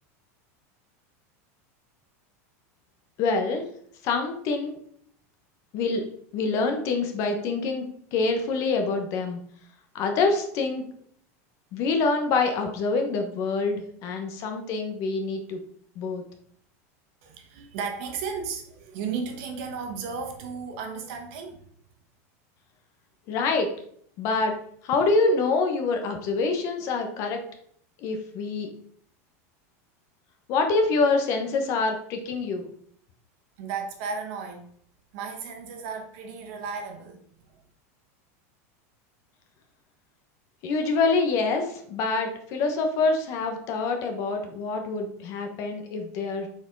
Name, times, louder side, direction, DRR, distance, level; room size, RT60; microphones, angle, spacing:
voice 1, 3.2-3.7 4.0-4.8 5.7-6.0 6.3-9.4 9.9-10.8 11.7-15.6 16.0-16.2 23.3-23.7 24.2-24.6 24.8-27.4 28.0-28.7 30.5-32.7 40.6-46.5, left 3 dB, 35° left, 1.1 m, -26 dB
voice 2, 17.2-21.6 33.6-34.6 35.1-37.6, right 5 dB, 50° right, 1.4 m, -34 dB
6.3 x 4.6 x 4.6 m
supercardioid pair, 170°, 8 cm